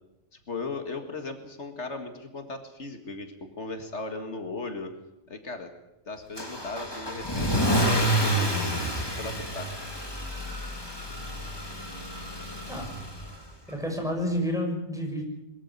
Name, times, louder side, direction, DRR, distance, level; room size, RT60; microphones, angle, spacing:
voice 1, 0.5-4.9 5.3-5.7 6.1-9.7, left 3 dB, 75° left, 6 dB, 2.2 m, -37 dB
Car / Engine starting / Accelerating revving vroom, 6.4-13.5, right 1 dB, 20° left, 3.1 m, -29 dB
voice 2, 13.7-15.2, equal, 5° right, 1 dB, 6.4 m, -29 dB
22.5 x 13.5 x 9.5 m, 0.93 s
omnidirectional pair, 1.2 m